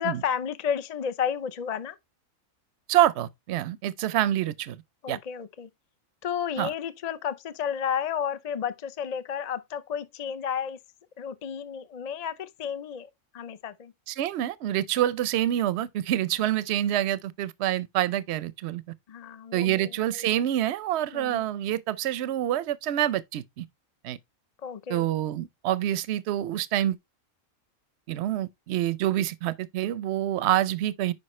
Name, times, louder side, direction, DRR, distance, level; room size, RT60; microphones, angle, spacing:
voice 1, 0.0-2.0 5.0-5.7 6.2-10.8 11.2-13.9 19.1-20.3 21.1-21.5 24.6-25.1, left 8 dB, 50° left, 0.5 m, -32 dB
voice 2, 2.9-4.8 5.1-5.2 6.6-6.7 14.1-18.8 19.5-23.7 24.0-24.2 24.9-27.0 28.1-31.1, right 12 dB, 60° right, 0.8 m, -27 dB
9.7 x 5.1 x 3.1 m
omnidirectional pair, 1.5 m